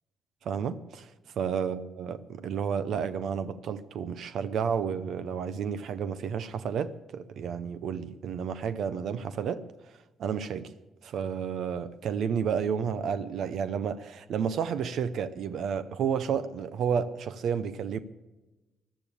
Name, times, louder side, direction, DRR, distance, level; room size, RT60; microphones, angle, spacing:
voice 1, 0.4-1.1 1.4-9.6 10.2-10.7 11.0-18.0, right 7 dB, 70° right, 0.6 m, -31 dB
14.0 x 12.0 x 8.5 m
cardioid pair, 90°, 0 cm